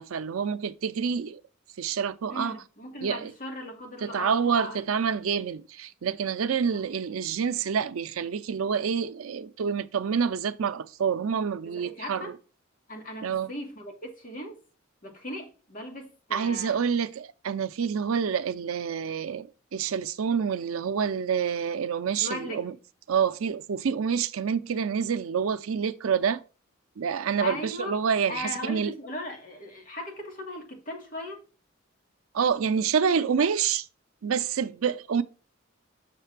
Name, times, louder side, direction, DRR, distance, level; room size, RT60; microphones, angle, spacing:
voice 1, 0.0-1.4 1.8-2.6 3.0-3.3 4.0-12.3 13.2-13.5 16.3-22.7 23.1-26.4 27.0-28.9 32.3-33.9 34.2-35.2, right 6 dB, 85° right, 0.5 m, -27 dB
voice 2, 2.3-4.8 6.7-6.8 11.6-12.3 12.9-14.6 15.0-16.8 22.2-22.6 27.4-28.0 28.3-31.4, left 1 dB, 40° left, 1.6 m, -38 dB
6.6 x 3.3 x 5.9 m
head